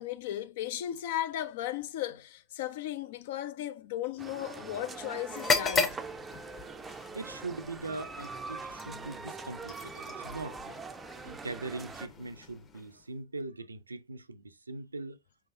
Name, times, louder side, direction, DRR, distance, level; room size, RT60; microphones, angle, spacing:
voice 1, 0.0-6.0, left 12 dB, 55° left, 0.6 m, -36 dB
sound 1, 4.2-12.1, right 4 dB, 15° right, 0.5 m, -43 dB
sound 2, 5.3-13.1, left 4 dB, 25° left, 0.9 m, -36 dB
voice 2, 7.1-10.7 11.2-15.2, right 3 dB, 80° right, 0.5 m, -41 dB
5.1 x 3.4 x 2.6 m
figure-of-eight pair, 90°, 0 cm